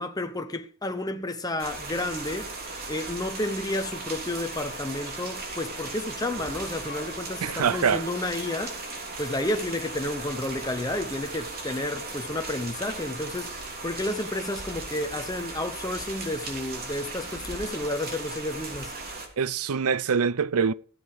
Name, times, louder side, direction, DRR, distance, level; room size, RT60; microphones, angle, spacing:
voice 1, 0.0-2.5 2.9-8.8 9.2-18.9, left 1 dB, 15° left, 0.9 m, -31 dB
sound 1, 1.6-19.3, right 3 dB, 45° right, 3.3 m, -37 dB
sound 2, 4.0-13.4, left 2 dB, 35° left, 2.4 m, -50 dB
voice 2, 7.4-8.1 19.4-20.7, right 6 dB, 75° right, 0.6 m, -24 dB
17.0 x 7.8 x 4.9 m
head